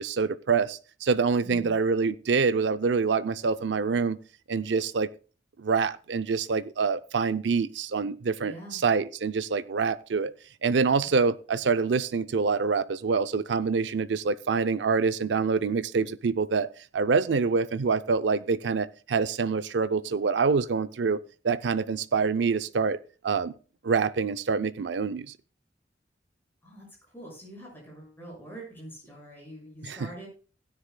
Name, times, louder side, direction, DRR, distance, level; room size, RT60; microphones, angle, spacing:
voice 1, 0.0-4.2 4.5-5.1 5.6-10.3 10.6-16.7 16.9-21.2 21.4-23.0 23.2-23.5 23.8-25.3 29.8-30.1, right 5 dB, 85° right, 0.5 m, -26 dB
voice 2, 1.4-1.8 8.4-8.8 26.6-26.9 27.1-30.3, right 1 dB, 10° left, 6.2 m, -44 dB
16.5 x 9.8 x 2.2 m
head